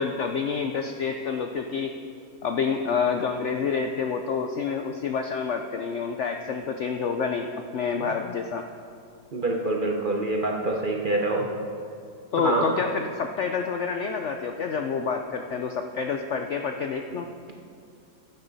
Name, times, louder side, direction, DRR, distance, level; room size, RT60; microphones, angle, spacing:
voice 1, 0.0-1.9 2.4-8.7 12.3-17.5, left 5 dB, 70° left, 5 dB, 0.7 m, -28 dB
voice 2, 9.3-11.5 12.4-12.7, right 2 dB, 40° right, 0 dB, 0.8 m, -25 dB
15.5 x 9.4 x 4.0 m, 2.4 s
omnidirectional pair, 1.8 m